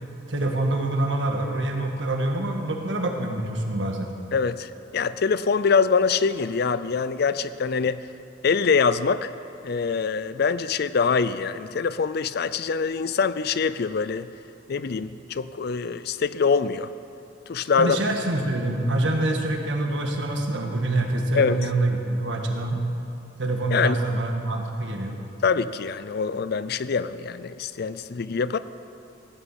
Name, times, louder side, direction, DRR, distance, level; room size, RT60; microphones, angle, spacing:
voice 1, 0.3-4.1 17.8-22.8 23.4-25.2, right 2 dB, 75° right, 2 dB, 1.7 m, -25 dB
voice 2, 4.3-8.1 8.4-9.3 9.6-14.3 14.7-16.9 17.5-18.0 21.4-21.6 23.7-24.0 25.4-28.6, left 5 dB, 55° left, 14 dB, 0.5 m, -24 dB
16.0 x 6.9 x 9.1 m, 2.7 s
head